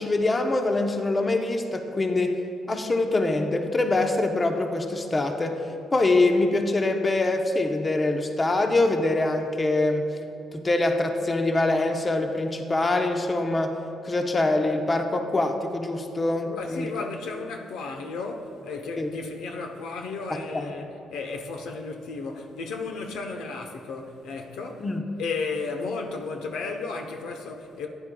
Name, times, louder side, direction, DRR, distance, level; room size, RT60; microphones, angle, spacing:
voice 1, 0.0-2.4 2.7-10.0 10.5-13.8 14.0-17.1 19.0-19.1 20.3-20.7 24.8-25.0, left 2 dB, 25° left, 0.7 m, -24 dB
voice 2, 16.4-24.9 25.2-27.9, left 4 dB, 80° left, 0.8 m, -34 dB
14.5 x 9.7 x 2.3 m
cardioid pair, 90°, 0 cm